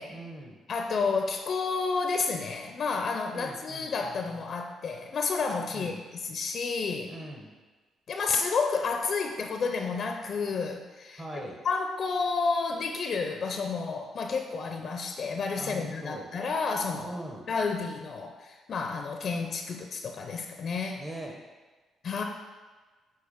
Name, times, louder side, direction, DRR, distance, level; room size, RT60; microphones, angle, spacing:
voice 1, 0.1-0.6 3.3-4.5 5.7-6.0 7.0-7.5 11.2-11.6 15.6-16.3 17.0-17.5 21.0-21.4, right 1 dB, 20° right, 0 dB, 1.0 m, -41 dB
voice 2, 0.7-7.1 8.1-17.1 17.5-21.0 22.0-22.2, left 4 dB, 55° left, 4 dB, 0.5 m, -30 dB
7.9 x 2.9 x 5.0 m, 1.3 s
cardioid pair, 90°, 0 cm